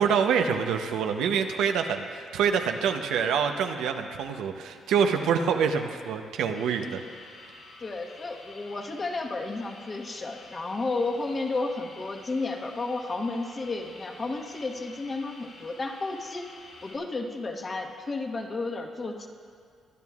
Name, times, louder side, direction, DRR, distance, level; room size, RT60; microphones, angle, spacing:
voice 1, 0.0-7.0, right 6 dB, 85° right, 5 dB, 0.7 m, -26 dB
sound 1, 6.5-17.0, left 2 dB, 80° left, 3.5 m, -50 dB
voice 2, 7.8-16.5 16.8-19.3, left 3 dB, 35° left, 2 dB, 1.3 m, -32 dB
21.5 x 11.0 x 2.4 m, 2.1 s
cardioid pair, 90°, 0 cm